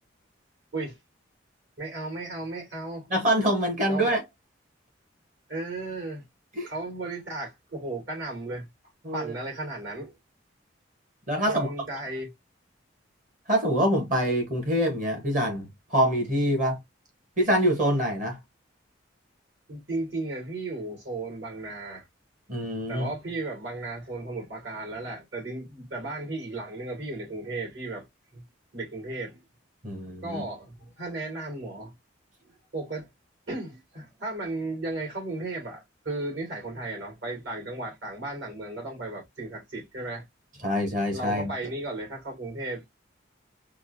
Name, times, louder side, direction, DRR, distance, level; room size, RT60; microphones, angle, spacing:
voice 1, 1.8-3.1 3.9-4.1 5.5-6.2 6.7-8.7 9.1-10.1 11.5-12.3 19.7-22.0 22.9-28.1 28.3-28.4 28.7-29.4 30.2-31.9 32.4-33.1 33.5-40.2 41.1-42.8, right 2 dB, 65° right, 2.5 m, -35 dB
voice 2, 3.1-4.2 6.6-6.7 9.0-9.3 11.3-11.7 13.5-16.8 17.4-18.4 22.5-23.1 29.8-30.4 40.6-41.5, equal, 40° right, 1.1 m, -25 dB
4.6 x 2.1 x 2.6 m
head